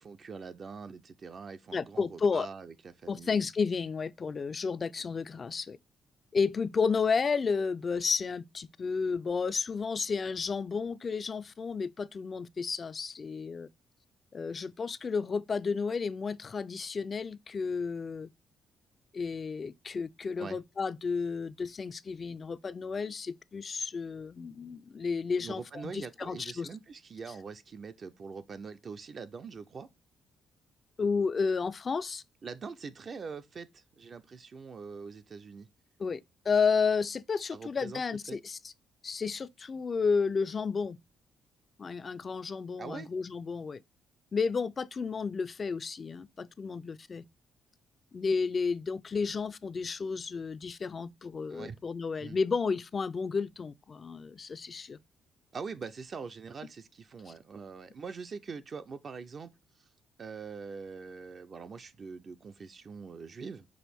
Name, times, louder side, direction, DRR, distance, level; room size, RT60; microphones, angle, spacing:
voice 1, 0.0-3.4 20.4-20.6 25.4-29.9 32.4-33.7 34.0-35.7 37.5-38.0 38.3-38.4 42.8-43.1 51.5-51.8 52.2-52.4 55.5-59.5 60.2-63.6, right 5 dB, 45° right, 0.4 m, -43 dB
voice 2, 1.7-2.5 3.1-5.8 6.3-13.7 14.3-18.3 19.1-26.7 27.3-27.4 31.0-32.2 36.0-38.7 39.0-41.0 41.8-43.8 44.3-47.2 48.1-55.0 57.3-57.4, left 5 dB, 40° left, 0.3 m, -32 dB
6.0 x 2.5 x 3.4 m
cardioid pair, 90°, 0 cm